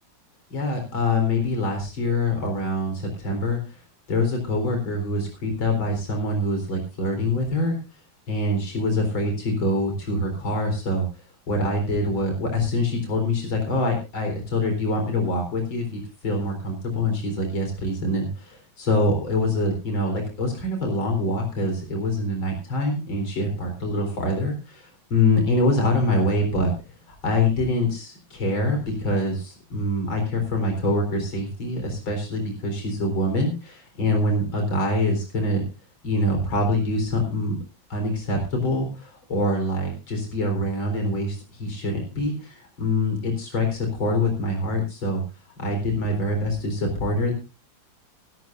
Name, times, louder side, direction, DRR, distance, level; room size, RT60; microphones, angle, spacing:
voice 1, 0.5-3.8 4.1-7.8 8.3-11.1 11.5-26.7 27.1-35.6 36.0-37.6 37.9-45.2 45.6-47.3, left 1 dB, 85° left, 3 dB, 4.8 m, -25 dB
23.0 x 12.0 x 2.6 m, 0.30 s
omnidirectional pair, 2.1 m